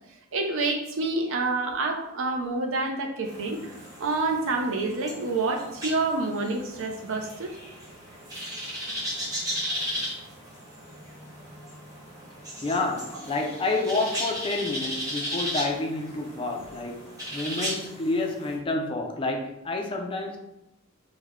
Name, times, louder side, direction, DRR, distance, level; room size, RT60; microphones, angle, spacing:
voice 1, 0.3-3.7 4.0-7.6, right 3 dB, 65° right, 3 dB, 0.5 m, -28 dB
sound 1, 3.3-18.6, equal, 15° right, 1.0 m, -36 dB
voice 2, 12.6-20.4, left 2 dB, 25° left, 2 dB, 0.4 m, -29 dB
3.3 x 2.1 x 3.5 m, 0.90 s
head